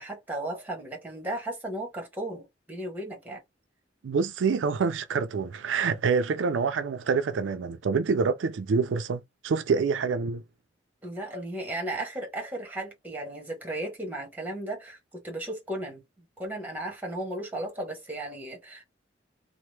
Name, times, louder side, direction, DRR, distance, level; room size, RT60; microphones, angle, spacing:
voice 1, 0.0-3.4 11.0-16.0 16.4-18.8, right 1 dB, 10° right, 1.1 m, -35 dB
voice 2, 4.0-10.4, right 5 dB, 90° right, 0.4 m, -26 dB
2.8 x 2.0 x 3.2 m
head